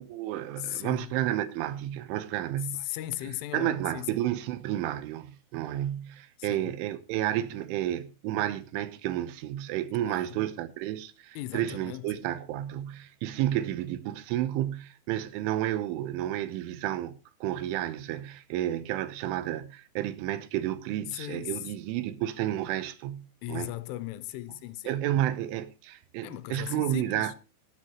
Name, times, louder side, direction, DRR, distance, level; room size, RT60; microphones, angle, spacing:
voice 1, 0.0-2.8 3.5-23.7 24.9-27.4, right 13 dB, 85° right, 3.4 m, -31 dB
voice 2, 0.6-1.1 2.8-4.2 6.4-6.7 10.0-10.4 11.4-12.1 21.1-21.7 23.4-25.0 26.2-27.3, left 16 dB, 90° left, 3.3 m, -37 dB
18.0 x 9.6 x 3.0 m
omnidirectional pair, 5.5 m